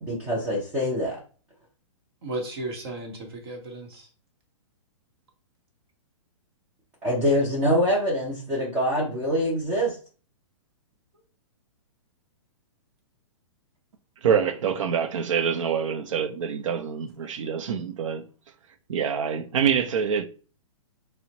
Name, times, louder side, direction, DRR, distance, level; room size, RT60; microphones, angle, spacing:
voice 1, 0.0-1.2 7.0-10.0, equal, 10° right, 0.4 m, -24 dB
voice 2, 2.2-4.0 17.2-17.3, right 2 dB, 50° right, 1.1 m, -35 dB
voice 3, 14.2-18.2 18.9-20.2, right 7 dB, 75° right, 0.6 m, -25 dB
4.2 x 2.1 x 2.8 m
hypercardioid pair, 175°, 17 cm